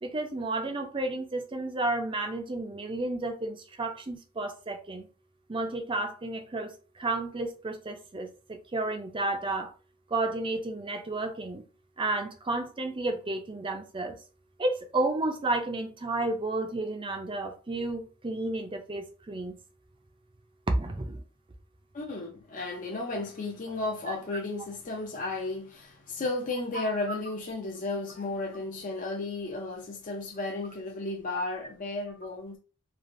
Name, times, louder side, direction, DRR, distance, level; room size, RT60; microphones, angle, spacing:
voice 1, 0.0-5.1 5.5-9.7 10.1-11.6 12.0-14.2 14.6-19.6 20.7-21.2 24.1-24.2 26.7-27.2, right 2 dB, 25° right, 0.5 m, -32 dB
voice 2, 21.9-32.6, left 2 dB, 35° left, 0.5 m, -34 dB
3.2 x 2.4 x 2.5 m
head